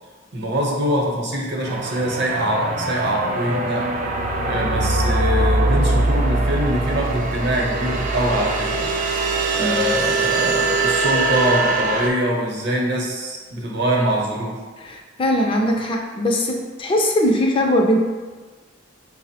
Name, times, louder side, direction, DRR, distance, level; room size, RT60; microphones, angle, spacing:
voice 1, 0.3-3.9 4.4-8.9 9.5-14.6, right 1 dB, 60° right, -2 dB, 0.8 m, -23 dB
sound 1, 1.7-12.1, right 2 dB, 40° right, 0.3 m, -22 dB
voice 2, 9.6-9.9 14.8-18.0, equal, 25° left, 1 dB, 0.4 m, -21 dB
5.5 x 2.0 x 2.8 m, 1.3 s
head